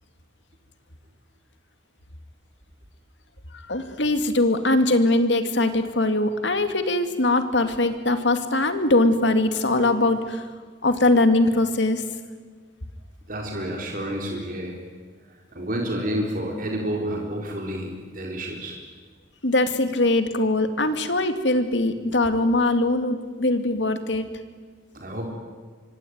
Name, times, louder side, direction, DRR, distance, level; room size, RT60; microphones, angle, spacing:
voice 1, 3.5-10.4 10.8-12.0 19.4-24.3, left 2 dB, 70° left, 8 dB, 2.4 m, -21 dB
voice 2, 13.3-14.8 15.5-18.8 24.9-25.3, right 1 dB, 50° right, 0 dB, 4.1 m, -29 dB
25.0 x 24.5 x 9.5 m, 1.5 s
head